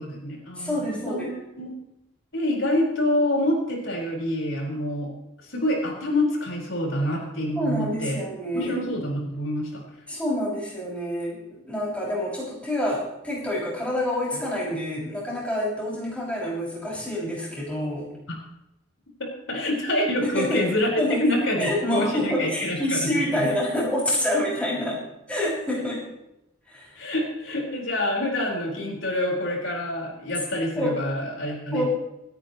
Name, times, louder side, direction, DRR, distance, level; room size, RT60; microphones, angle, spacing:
voice 1, 0.0-1.7 2.3-5.1 5.5-8.2 8.5-9.8 19.2-23.5 27.0-31.9, left 1 dB, 80° left, -2 dB, 4.8 m, -26 dB
voice 2, 0.6-1.3 7.6-8.7 10.1-18.1 20.2-20.7 21.0-21.3 21.6-25.0 25.3-26.0 26.7-27.1 30.8-31.0 31.7-31.9, left 1 dB, 5° left, -6 dB, 6.3 m, -27 dB
28.0 x 10.0 x 3.1 m, 0.87 s
head